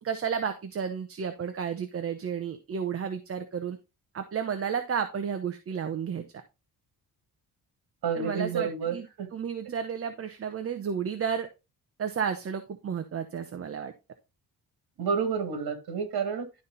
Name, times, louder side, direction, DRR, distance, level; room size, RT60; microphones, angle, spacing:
voice 1, 0.0-3.8 4.1-6.3 8.1-9.1 9.3-11.5 12.0-13.9, right 7 dB, 35° right, 7 dB, 0.8 m, -32 dB
voice 2, 8.0-9.3 15.0-16.5, right 6 dB, 70° right, 6 dB, 2.3 m, -30 dB
11.5 x 4.2 x 3.9 m, 0.27 s
cardioid pair, 145°, 38 cm